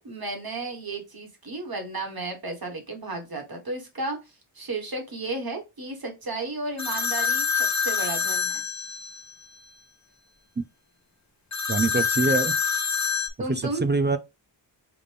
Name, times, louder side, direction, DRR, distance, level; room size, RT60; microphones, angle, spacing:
voice 1, 0.0-4.2 4.5-8.6 13.4-13.8, right 2 dB, 50° right, 1.6 m, -33 dB
sound 1, 6.8-9.3 11.5-13.3, left 6 dB, 35° left, 0.8 m, -26 dB
voice 2, 11.7-12.5 13.5-14.2, right 3 dB, 25° right, 0.4 m, -24 dB
5.1 x 2.5 x 3.4 m
wide cardioid pair, 75°, 48 cm